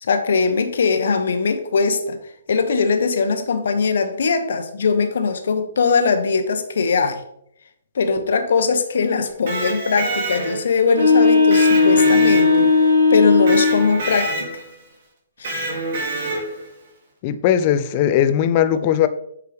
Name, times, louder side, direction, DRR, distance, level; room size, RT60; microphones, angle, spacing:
voice 1, 0.0-2.2 2.5-7.2 7.9-12.7 13.1-14.6 15.4-15.6, left 5 dB, 70° left, 1.0 m, -20 dB
Electric guitar, 9.3-10.8 11.5-12.9 13.5-14.7 15.4-16.7, right 2 dB, 55° right, 2.4 m, -27 dB
sound 1, 10.9-13.9, left 4 dB, 90° right, 2.5 m, -15 dB
voice 2, 17.2-19.1, left 10 dB, 35° left, 0.5 m, -18 dB
7.9 x 4.9 x 3.4 m
hypercardioid pair, 140°, 0 cm